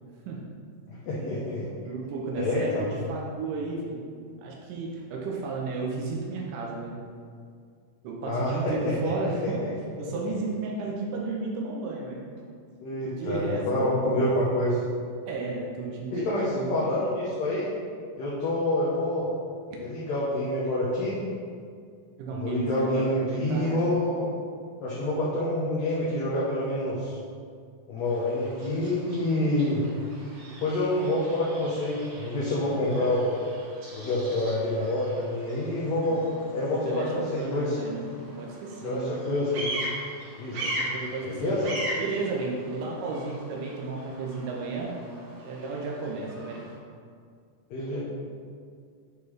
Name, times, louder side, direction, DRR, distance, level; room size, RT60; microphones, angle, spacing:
voice 1, 0.9-1.6 2.4-2.9 8.2-9.1 9.4-9.7 10.1-10.3 12.8-14.8 16.1-17.7 18.2-19.3 19.8-21.2 22.3-24.3 24.8-27.2 27.9-29.8 30.5-33.4 33.9-36.2 36.5-37.8 38.8-39.8 40.4-40.8 41.2-41.7 47.7-48.0, left 1 dB, 70° left, -7 dB, 2.0 m, -27 dB
voice 2, 1.8-4.0 4.4-6.9 8.0-12.2 13.0-14.0 15.3-16.9 19.7-19.8 22.2-23.7 36.7-39.2 40.5-41.5 42.0-45.0 45.4-46.6, right 3 dB, 85° right, -2 dB, 2.4 m, -33 dB
Bird vocalization bird call bird song, 28.0-46.7, right 1 dB, 70° right, 2.9 m, -40 dB
9.1 x 4.0 x 3.2 m, 2.2 s
omnidirectional pair, 3.6 m